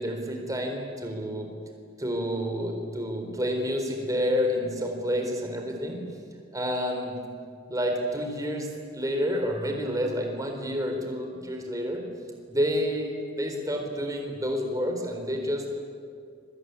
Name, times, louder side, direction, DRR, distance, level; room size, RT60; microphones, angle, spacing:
voice 1, 0.0-1.5 2.0-6.0 6.5-7.1 7.7-8.7 8.9-12.0 12.5-15.7, equal, 20° right, 3 dB, 4.2 m, -29 dB
26.0 x 23.0 x 9.7 m, 2.2 s
head